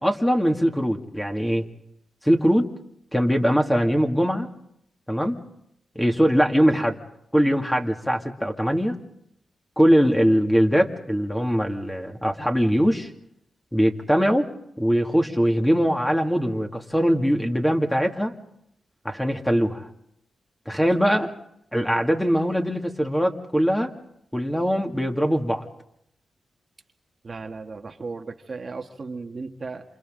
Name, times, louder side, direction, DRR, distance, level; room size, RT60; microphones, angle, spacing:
voice 1, 0.0-1.6 2.2-2.7 3.1-4.5 5.1-5.4 6.0-7.0 7.3-9.0 9.8-13.1 13.7-14.5 14.8-18.3 19.0-19.9 20.7-21.3 21.7-23.9 24.3-25.7, equal, 5° left, 3 dB, 2.4 m, -21 dB
voice 2, 27.2-29.8, right 4 dB, 45° right, 4 dB, 1.5 m, -35 dB
28.0 x 27.5 x 3.9 m, 0.75 s
cardioid pair, 75°, 0 cm